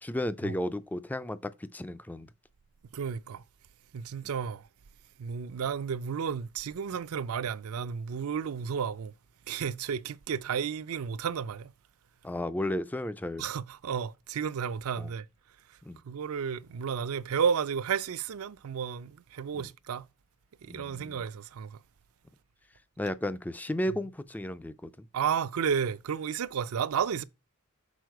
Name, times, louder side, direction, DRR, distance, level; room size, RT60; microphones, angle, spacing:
voice 1, 0.0-2.3 12.2-13.4 15.0-15.1 15.8-16.0 19.6-19.7 20.7-21.2 23.0-25.1, left 1 dB, 5° left, 0.3 m, -34 dB
voice 2, 2.9-3.4 3.9-4.7 5.2-9.1 9.5-11.7 13.4-15.3 15.7-15.8 16.0-20.0 20.6-21.8 25.1-27.2, right 7 dB, 75° right, 0.4 m, -32 dB
6.3 x 4.6 x 4.6 m
head